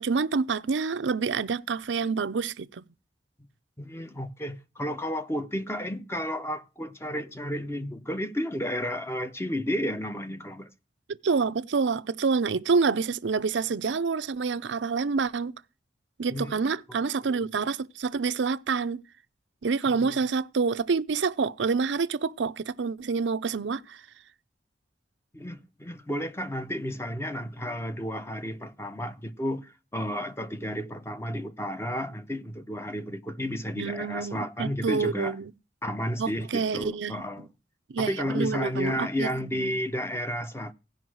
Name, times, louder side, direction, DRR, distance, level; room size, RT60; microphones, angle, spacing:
voice 1, 0.0-2.8 11.2-15.5 16.2-19.0 19.6-24.0 33.8-35.5 36.2-37.2 37.9-39.8, right 5 dB, 85° right, 0.5 m, -27 dB
voice 2, 3.8-10.7 16.3-16.6 16.9-17.0 20.0-20.2 25.3-35.4 35.8-37.5 38.0-40.7, equal, 15° left, 0.7 m, -32 dB
16.0 x 5.4 x 6.2 m
head